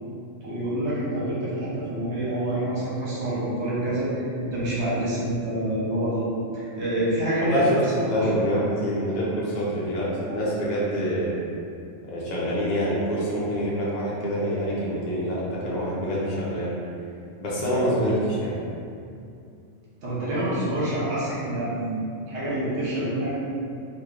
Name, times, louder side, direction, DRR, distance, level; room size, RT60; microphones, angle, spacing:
voice 1, 0.4-8.3 20.0-23.3, right 1 dB, 55° right, -8 dB, 1.3 m, -27 dB
voice 2, 7.4-11.4 12.0-16.7 17.4-18.6, equal, 45° left, -7 dB, 0.6 m, -26 dB
3.0 x 2.6 x 3.7 m, 2.4 s
omnidirectional pair, 1.4 m